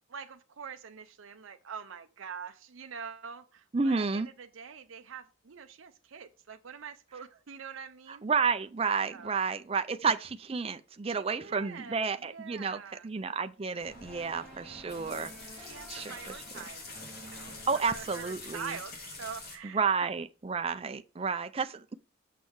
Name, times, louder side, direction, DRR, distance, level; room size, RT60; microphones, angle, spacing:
voice 1, 0.1-8.2 9.1-9.3 11.1-11.2 11.4-13.1 15.5-16.8 17.2-19.8, right 6 dB, 80° right, 0.6 m, -45 dB
voice 2, 3.7-4.3 8.1-16.4 17.7-18.7 19.6-21.9, right 5 dB, 30° right, 0.4 m, -31 dB
sound 1, 13.8-19.6, left 3 dB, 50° left, 3.0 m, -46 dB
sound 2, 14.1-18.7, equal, 5° left, 1.9 m, -52 dB
6.8 x 6.4 x 4.7 m
head